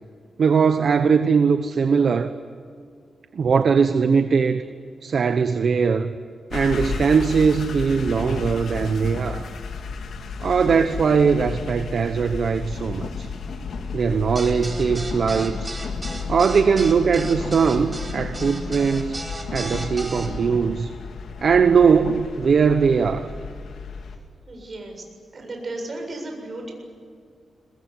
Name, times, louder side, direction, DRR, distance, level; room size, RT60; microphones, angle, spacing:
voice 1, 0.4-2.3 3.3-4.7 5.0-6.1 6.5-9.5 10.4-13.3 13.9-15.8 16.3-19.2 19.5-20.9 21.4-23.3, right 5 dB, 60° right, 9 dB, 1.0 m, -20 dB
sound 1, 6.5-24.2, left 5 dB, 80° left, 2.8 m, -33 dB
sound 2, 14.3-20.3, right 2 dB, 25° right, 4.8 m, -34 dB
voice 2, 24.5-25.0 25.3-26.7, right 2 dB, 40° right, 2 dB, 7.4 m, -34 dB
23.5 x 21.0 x 9.9 m, 2.3 s
wide cardioid pair, 105°, 0 cm